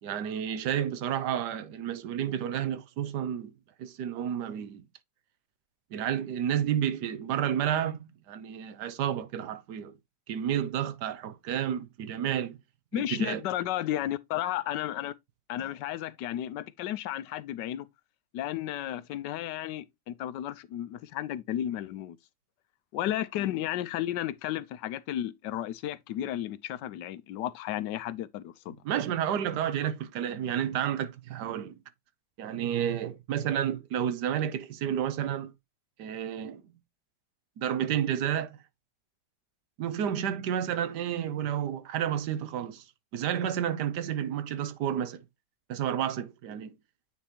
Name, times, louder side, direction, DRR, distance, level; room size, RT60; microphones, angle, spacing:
voice 1, 0.0-3.5 3.8-4.9 5.9-10.0 10.3-12.6 12.9-13.4 28.8-31.8 32.4-35.5 36.0-36.6 37.6-38.6 39.8-42.8 43.1-45.2 45.7-46.7, right 9 dB, 75° right, 1.4 m, -31 dB
voice 2, 12.9-15.1 15.5-17.9 18.3-22.2 22.9-28.8, left 12 dB, 90° left, 1.3 m, -33 dB
9.2 x 4.2 x 2.9 m
omnidirectional pair, 1.8 m